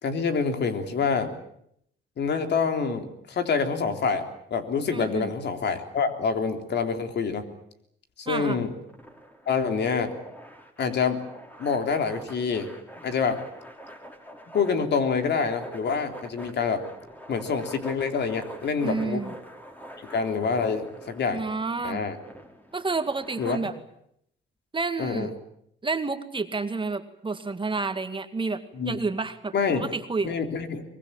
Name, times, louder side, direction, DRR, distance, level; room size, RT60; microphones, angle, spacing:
voice 1, 0.0-1.3 2.2-4.2 4.5-7.4 8.2-8.7 9.5-10.1 10.8-11.2 11.6-12.7 13.0-13.4 14.5-16.8 17.3-19.2 20.1-21.4 21.8-22.2 23.4-23.6 25.0-25.3 28.7-29.0 29.5-29.9 30.2-30.8, left 5 dB, 60° left, 7 dB, 3.4 m, -26 dB
voice 2, 4.9-5.3 8.3-8.6 18.8-19.3 21.3-22.0 22.7-23.7 24.7-25.3 25.8-30.4, right 3 dB, 25° right, 9 dB, 2.0 m, -30 dB
sound 1, 8.9-23.6, equal, 10° left, 4.5 m, -45 dB
23.5 x 21.5 x 8.8 m, 0.72 s
cardioid pair, 90°, 20 cm